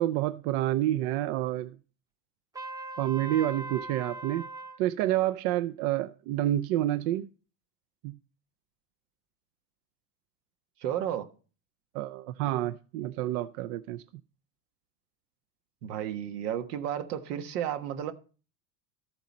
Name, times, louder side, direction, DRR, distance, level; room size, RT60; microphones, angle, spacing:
voice 1, 0.0-1.8 3.0-4.5 4.8-7.3 8.0-8.2 11.9-14.0, right 14 dB, 60° right, 0.6 m, -28 dB
Trumpet, 2.5-4.8, right 2 dB, 10° right, 0.7 m, -39 dB
voice 2, 10.8-11.3 15.8-18.1, right 10 dB, 85° right, 1.5 m, -32 dB
13.0 x 8.0 x 4.2 m
supercardioid pair, 125°, 46 cm